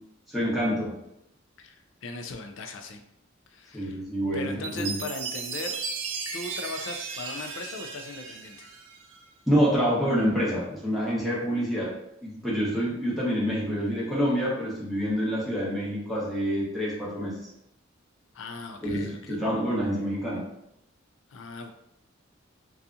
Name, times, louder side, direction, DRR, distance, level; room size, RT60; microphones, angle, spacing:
voice 1, 0.3-0.9 3.7-4.9 9.5-11.9 12.2-17.3 18.8-20.5, equal, ahead, -8 dB, 0.9 m, -27 dB
voice 2, 1.6-3.0 3.5-4.0 4.3-5.8 6.3-8.7 18.3-19.4 21.3-21.7, left 3 dB, 70° left, 5 dB, 0.4 m, -38 dB
Chime, 4.6-9.2, right 5 dB, 75° right, 0.4 m, -36 dB
2.7 x 2.3 x 2.4 m, 0.80 s
head